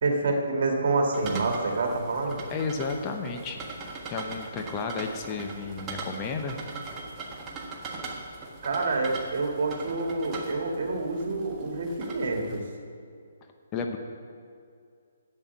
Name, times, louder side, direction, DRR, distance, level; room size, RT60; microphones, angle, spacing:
voice 1, 0.0-2.4 8.6-12.6, right 3 dB, 60° right, 2 dB, 2.0 m, -27 dB
sound 1, 1.1-12.6, right 3 dB, 20° right, 1.3 m, -40 dB
voice 2, 2.5-3.6 4.1-6.6 13.7-14.0, left 4 dB, 25° left, 3 dB, 0.9 m, -32 dB
7.9 x 7.3 x 8.3 m, 2.3 s
hypercardioid pair, 145°, 0 cm